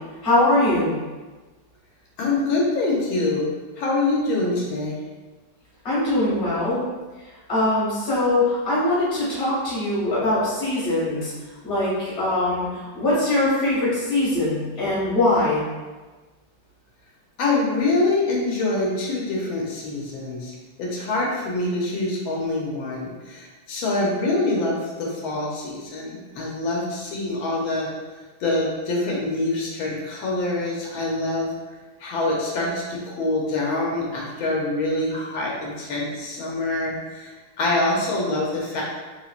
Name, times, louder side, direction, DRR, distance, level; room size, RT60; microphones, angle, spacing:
voice 1, 0.2-1.0 5.8-6.8 7.5-11.3 11.6-12.7 12.9-15.6, left 1 dB, 30° left, -9 dB, 1.4 m, -22 dB
voice 2, 2.2-3.5 3.8-4.9 17.4-20.5 20.8-27.9 28.4-31.5 32.0-37.3 37.6-38.8, left 2 dB, 85° left, -3 dB, 1.6 m, -25 dB
3.5 x 3.0 x 2.4 m, 1.3 s
omnidirectional pair, 2.1 m